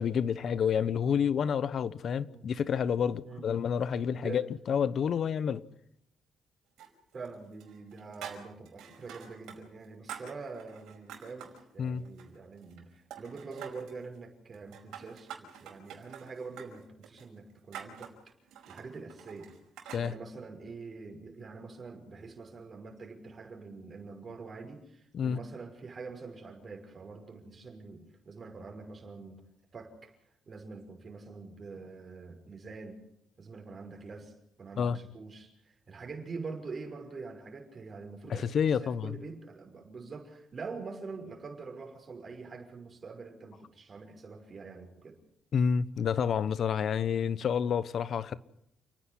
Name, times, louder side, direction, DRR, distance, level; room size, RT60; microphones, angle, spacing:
voice 1, 0.0-5.6 11.8-12.0 19.9-20.1 25.1-25.4 34.8-35.0 38.3-39.1 45.5-48.4, left 7 dB, 60° left, 1.0 m, -29 dB
voice 2, 4.1-4.5 7.1-18.1 18.7-19.6 20.0-29.4 29.7-30.1 30.5-33.0 33.4-45.2, right 4 dB, 40° right, 5.8 m, -45 dB
sound 1, 6.8-7.3 7.6-9.6 9.8-11.6 12.0-12.8 13.1-14.0 14.5-20.1, right 8 dB, 85° right, 5.1 m, -47 dB
29.5 x 10.0 x 9.9 m
cardioid pair, 90°, 0 cm